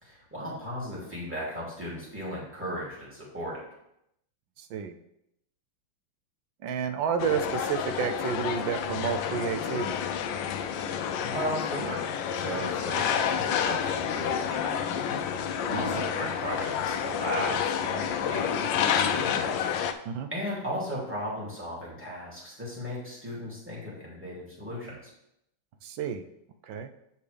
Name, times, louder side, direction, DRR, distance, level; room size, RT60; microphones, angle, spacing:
voice 1, 0.0-3.6 11.2-12.0 12.3-19.7 20.3-25.1, equal, 5° right, -6 dB, 2.6 m, -36 dB
voice 2, 4.6-5.0 6.6-10.0 15.7-15.8 20.1-20.3 25.8-26.3 26.7-26.9, right 7 dB, 75° right, 7 dB, 1.2 m, -30 dB
sound 1, 7.2-19.9, left 8 dB, 75° left, 1.1 m, -29 dB
7.8 x 6.8 x 3.4 m, 0.80 s
omnidirectional pair, 2.4 m